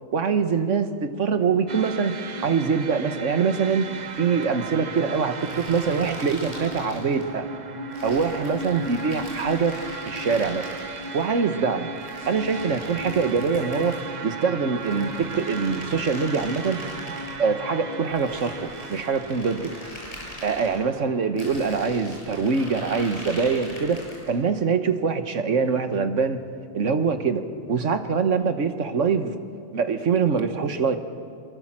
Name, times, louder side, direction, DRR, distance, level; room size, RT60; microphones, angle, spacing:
voice 1, 0.1-3.9 4.2-7.5 8.0-9.8 10.1-10.7 11.1-11.9 12.3-16.8 17.4-19.7 20.4-26.4 26.7-27.4 27.7-29.4 29.7-31.0, right 5 dB, 75° right, 9 dB, 1.6 m, -24 dB
sound 1, 1.7-19.9, right 3 dB, 40° right, 0.9 m, -35 dB
sound 2, 5.4-7.3 7.9-11.2 12.0-14.1 14.7-17.4 18.0-20.8 21.4-24.3, equal, 30° left, 6.8 m, -41 dB
24.5 x 23.5 x 7.5 m, 2.3 s
omnidirectional pair, 1.3 m